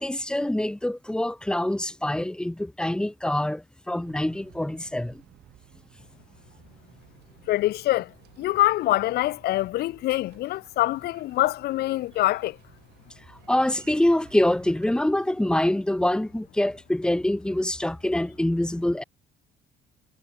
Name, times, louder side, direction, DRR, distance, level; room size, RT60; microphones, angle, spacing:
voice 1, 0.0-5.2 13.3-19.0, left 1 dB, 5° left, 1.9 m, -25 dB
sound 1, 4.0-15.0, right 16 dB, 80° right, 4.9 m, -56 dB
voice 2, 7.5-8.1 8.4-12.6, left 16 dB, 70° left, 0.7 m, -24 dB
cardioid pair, 110°, 17 cm